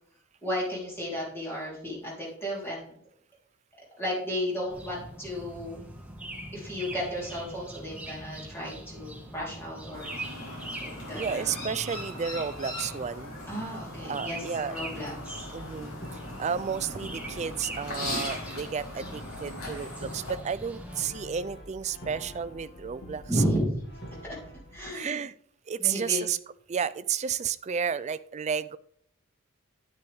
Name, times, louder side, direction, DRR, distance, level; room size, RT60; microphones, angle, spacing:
voice 1, 0.4-3.0 4.0-5.8 6.5-10.1 10.8-11.5 13.5-15.5 23.3-24.4 24.7-25.2 25.8-26.2, equal, 10° left, -5 dB, 3.6 m, -33 dB
sound 1, 4.7-21.1, right 1 dB, 5° right, 1.4 m, -42 dB
Chirp tweet, 9.9-20.3, left 2 dB, 75° left, 4.9 m, -40 dB
voice 2, 11.1-13.4 14.1-14.8 15.5-16.0 16.4-23.2 24.9-25.3 25.7-26.4 26.7-28.8, right 7 dB, 30° right, 15 dB, 0.3 m, -32 dB
Brass instrument, 15.0-24.8, equal, 55° left, 2.1 m, -46 dB
9.6 x 9.2 x 3.5 m, 0.65 s
head